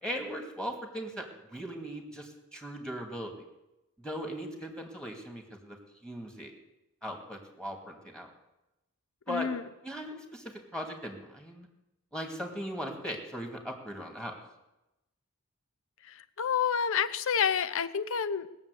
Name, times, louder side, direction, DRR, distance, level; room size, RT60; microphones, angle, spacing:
voice 1, 0.0-3.3 4.0-5.8 6.0-6.5 7.0-8.3 9.3-9.5 9.8-11.7 12.1-14.4, equal, 5° left, 2 dB, 2.4 m, -39 dB
voice 2, 9.3-9.6 16.0-18.5, left 7 dB, 60° left, 13 dB, 0.7 m, -29 dB
20.0 x 7.2 x 8.5 m, 0.96 s
head